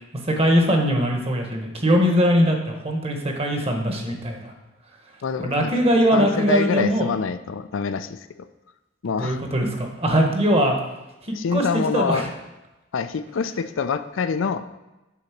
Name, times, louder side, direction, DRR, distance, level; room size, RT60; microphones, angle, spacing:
voice 1, 0.2-4.5 5.4-7.1 9.2-10.8 11.5-11.6 11.9-12.3, equal, 30° right, 3 dB, 1.2 m, -21 dB
voice 2, 5.2-5.7 6.1-8.2 9.0-9.4 11.3-12.2 12.9-14.7, left 5 dB, 75° left, 11 dB, 0.4 m, -25 dB
8.5 x 4.0 x 5.9 m, 1.0 s
head